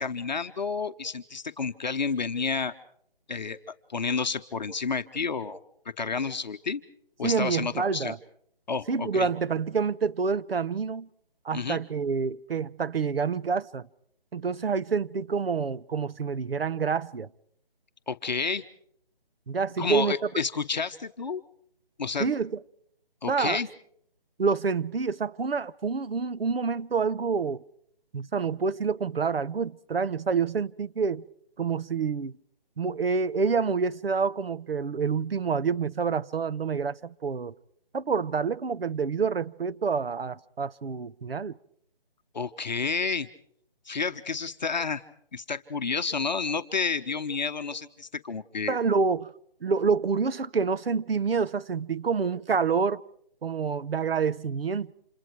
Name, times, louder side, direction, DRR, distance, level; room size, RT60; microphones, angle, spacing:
voice 1, 0.0-2.7 3.3-3.6 3.9-5.6 6.0-6.8 7.2-8.1 8.7-9.3 11.5-11.8 18.1-18.6 19.8-21.4 22.0-22.3 23.2-23.7 42.3-43.3 43.9-45.0 45.3-48.8, left 5 dB, 50° left, 1.0 m, -30 dB
voice 2, 7.2-8.2 8.9-11.1 11.4-13.9 14.3-17.3 19.5-20.2 22.2-22.6 23.3-23.6 24.4-27.6 28.1-31.2 31.6-32.3 32.8-37.5 37.9-41.6 48.7-49.3 49.6-53.0 53.4-54.9, right 5 dB, 80° right, 0.9 m, -27 dB
30.0 x 27.5 x 4.6 m
figure-of-eight pair, 165°, 29 cm